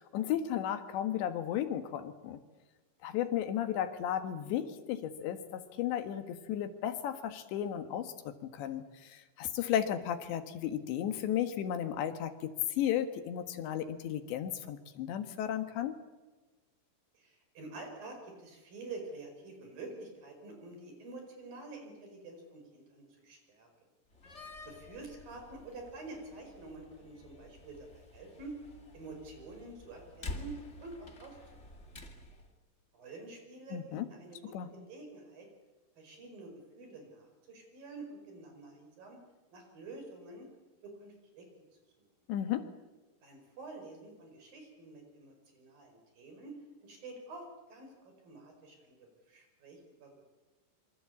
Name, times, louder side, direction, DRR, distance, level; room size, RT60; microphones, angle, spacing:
voice 1, 0.0-2.4 3.0-8.1 8.4-15.9 33.7-34.1 34.5-34.7 42.3-42.7, left 10 dB, 80° left, 8 dB, 3.8 m, -34 dB
voice 2, 17.1-23.7 24.3-28.5 28.9-30.6 30.8-31.4 32.9-35.5 36.0-39.2 39.5-40.5 40.8-41.5 42.0-42.1 43.2-50.1, right 3 dB, 55° right, 4 dB, 6.7 m, -48 dB
Slam, 24.1-32.5, left 2 dB, 25° left, 1.5 m, -49 dB
26.5 x 24.5 x 8.6 m, 1.2 s
omnidirectional pair, 5.0 m